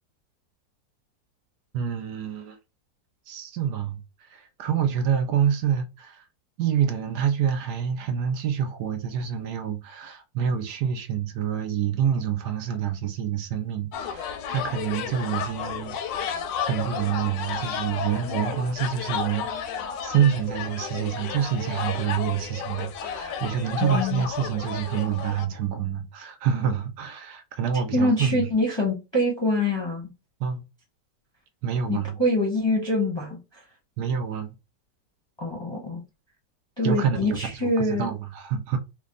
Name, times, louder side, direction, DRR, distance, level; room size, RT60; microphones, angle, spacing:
voice 1, 1.7-2.6 3.3-6.2 6.6-15.9 16.6-28.4 30.4-30.7 31.6-32.2 34.0-34.5 36.8-38.8, right 8 dB, 75° right, 1.1 m, -27 dB
sound 1, 13.9-25.5, left 7 dB, 80° left, 1.2 m, -32 dB
voice 2, 23.8-24.2 27.9-30.1 31.9-33.6 35.4-36.0 36.8-38.1, left 1 dB, 20° left, 0.7 m, -25 dB
3.3 x 2.2 x 3.7 m
omnidirectional pair, 1.9 m